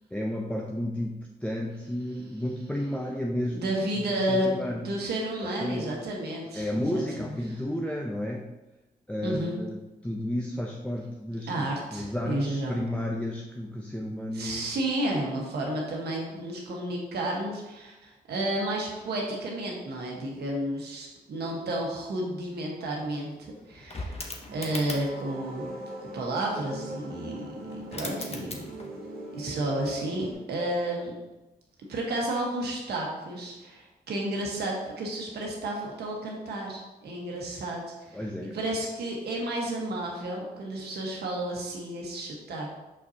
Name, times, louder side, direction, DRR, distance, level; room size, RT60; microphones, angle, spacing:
voice 1, 0.1-3.7 4.3-4.9 5.6-5.9 6.5-8.5 9.1-11.7 11.9-14.7 38.1-38.5, left 1 dB, 5° left, -1 dB, 0.7 m, -32 dB
voice 2, 3.5-7.6 9.2-9.5 11.5-12.8 14.3-24.2 24.5-25.7 26.0-28.6 29.3-31.1 31.9-38.2 38.5-42.8, right 1 dB, 90° right, -1 dB, 1.4 m, -32 dB
sound 1, 22.5-22.6 22.8-25.3 27.4-27.5 27.7-29.1 29.4-30.5 31.9-32.1, left 2 dB, 40° left, 1.0 m, -41 dB
sound 2, 24.5-30.3, right 2 dB, 70° right, 1.4 m, -41 dB
6.3 x 5.3 x 2.8 m, 1.0 s
cardioid pair, 60°, 16 cm